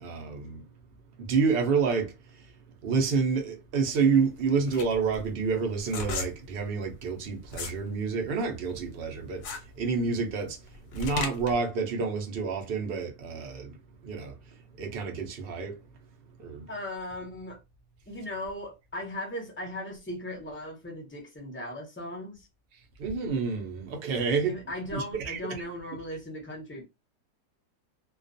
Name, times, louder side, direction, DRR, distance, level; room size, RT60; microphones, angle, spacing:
voice 1, 0.0-0.6 1.2-2.5 2.8-10.6 10.9-13.8 14.0-14.4 14.8-15.8 16.4-16.7 23.0-24.5 24.9-25.6, right 5 dB, 85° right, 0.5 m, -29 dB
sound 1, 4.2-7.8 8.2-11.6, left 4 dB, 70° left, 0.9 m, -37 dB
voice 2, 16.7-17.6 18.1-22.5 24.4-26.8, left 1 dB, 15° left, 0.4 m, -37 dB
2.3 x 2.2 x 2.5 m
omnidirectional pair, 1.6 m